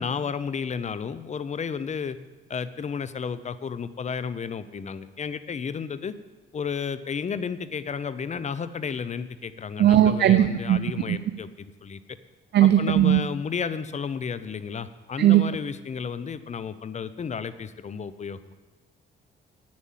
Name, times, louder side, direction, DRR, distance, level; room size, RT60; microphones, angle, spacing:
voice 1, 0.0-2.2 2.5-6.1 6.5-12.0 12.6-18.5, left 6 dB, 35° left, 14 dB, 0.7 m, -32 dB
voice 2, 9.8-10.8 11.1-11.2 12.5-13.2 15.2-15.4, right 12 dB, 60° right, 9 dB, 0.6 m, -18 dB
10.5 x 9.0 x 7.4 m, 1.3 s
cardioid pair, 90°, 20 cm